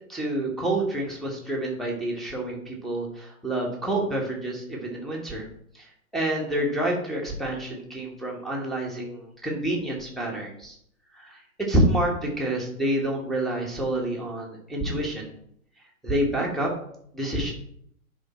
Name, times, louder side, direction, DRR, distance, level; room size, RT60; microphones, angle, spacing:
voice 1, 0.1-5.5 5.7-10.8 11.1-15.3 16.0-16.7 17.1-17.5, right 1 dB, ahead, -3 dB, 1.2 m, -28 dB
9.9 x 3.6 x 4.1 m, 0.67 s
figure-of-eight pair, 120°, 43 cm